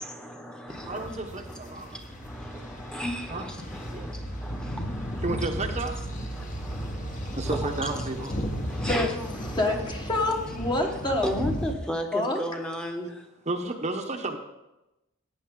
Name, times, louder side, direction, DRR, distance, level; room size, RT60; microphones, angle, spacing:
voice 1, 0.0-5.4 6.1-9.6 11.2-13.2, equal, 5° left, 3 dB, 1.1 m, -36 dB
sound 1, 0.7-11.7, equal, 40° left, 1.3 m, -35 dB
voice 2, 0.8-2.0 3.3-3.5 3.9-4.1 5.2-5.9 7.3-8.3 13.5-14.4, right 2 dB, 35° right, 4 dB, 0.9 m, -32 dB
voice 3, 9.5-11.3 12.1-12.4, left 2 dB, 20° left, 2 dB, 1.2 m, -27 dB
14.0 x 9.3 x 3.8 m, 0.95 s
head